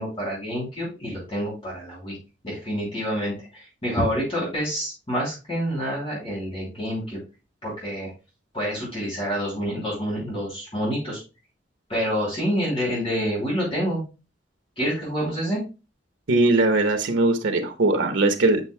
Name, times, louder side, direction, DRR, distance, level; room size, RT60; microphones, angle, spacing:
voice 1, 0.0-2.2 2.4-7.2 7.6-8.1 8.5-11.2 11.9-14.0 14.8-15.6, equal, 30° left, -6 dB, 3.1 m, -27 dB
voice 2, 16.3-18.6, right 2 dB, 85° right, 6 dB, 1.1 m, -20 dB
7.8 x 6.4 x 2.2 m, 0.29 s
head